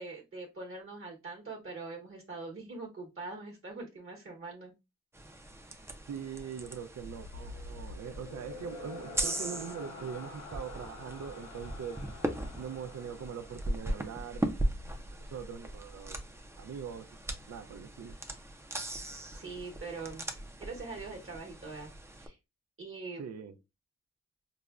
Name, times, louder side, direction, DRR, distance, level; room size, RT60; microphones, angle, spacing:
voice 1, 0.0-4.7 19.3-20.2 20.6-22.4 22.8-23.2, right 3 dB, 45° right, 0.9 m, -43 dB
sound 1, 5.1-22.3, right 1 dB, 10° right, 0.4 m, -39 dB
voice 2, 6.1-12.0 12.6-14.8 15.2-16.2 16.6-17.2 17.5-18.2 23.2-23.6, right 7 dB, 65° right, 0.5 m, -42 dB
sound 2, 7.0-14.4, left 2 dB, 80° left, 0.9 m, -47 dB
4.9 x 2.1 x 2.3 m
wide cardioid pair, 145°, 29 cm